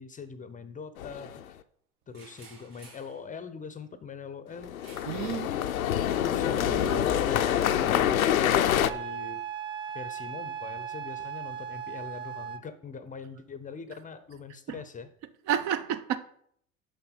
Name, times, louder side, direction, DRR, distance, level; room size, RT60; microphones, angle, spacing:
voice 1, 0.0-1.6 2.1-4.7 6.2-9.4 9.9-15.1, left 5 dB, 20° left, 0.7 m, -42 dB
sound 1, 1.0-1.4 4.6-8.9, left 10 dB, 80° left, 0.6 m, -26 dB
sound 2, 2.1-3.2 4.8-5.3 5.5-5.8 6.6-8.9, left 1 dB, 85° right, 3.1 m, -44 dB
voice 2, 5.1-5.5 15.5-16.2, right 9 dB, 45° right, 0.7 m, -29 dB
Wind instrument woodwind instrument, 8.8-12.7, right 8 dB, 15° right, 0.3 m, -37 dB
6.8 x 5.8 x 5.5 m
figure-of-eight pair, 75°, 42 cm